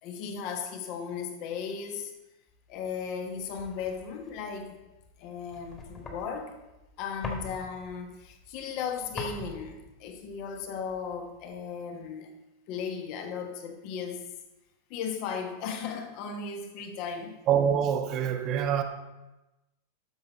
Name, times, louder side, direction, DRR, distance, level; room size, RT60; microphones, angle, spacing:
voice 1, 0.0-2.1 2.7-4.8 5.2-6.5 7.0-12.3 12.7-14.2 14.9-17.3, left 6 dB, 45° left, 1.4 m, -36 dB
sound 1, 2.7-11.6, left 3 dB, 25° left, 2.0 m, -45 dB
voice 2, 17.5-18.8, right 8 dB, 35° right, 0.9 m, -25 dB
12.5 x 6.9 x 4.0 m
figure-of-eight pair, 90°, 0 cm